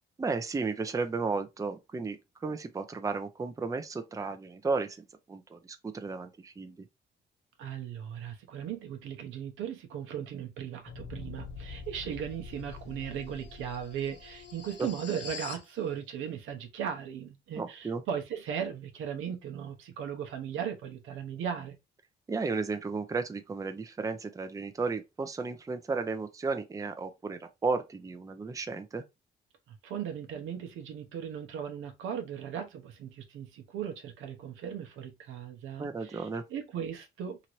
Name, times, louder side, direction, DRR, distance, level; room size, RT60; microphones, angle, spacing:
voice 1, 0.2-6.8 14.8-14.9 17.5-18.0 22.3-29.0 35.8-36.4, right 4 dB, 15° right, 0.5 m, -34 dB
voice 2, 7.6-21.8 29.7-37.5, right 8 dB, 85° right, 0.8 m, -37 dB
sound 1, 10.8-15.7, left 5 dB, 60° left, 0.8 m, -45 dB
2.9 x 2.6 x 2.9 m
cardioid pair, 90°, 20 cm